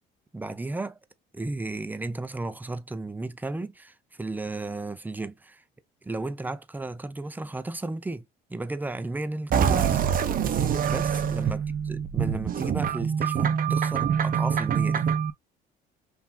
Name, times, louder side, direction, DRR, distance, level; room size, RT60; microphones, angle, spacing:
voice 1, 0.3-1.0 1.3-5.6 6.0-10.0 10.9-11.6 11.9-15.2, right 2 dB, 10° right, 0.6 m, -34 dB
sound 1, 9.5-15.3, right 7 dB, 45° right, 0.8 m, -25 dB
5.8 x 2.7 x 2.3 m
supercardioid pair, 95°, 21 cm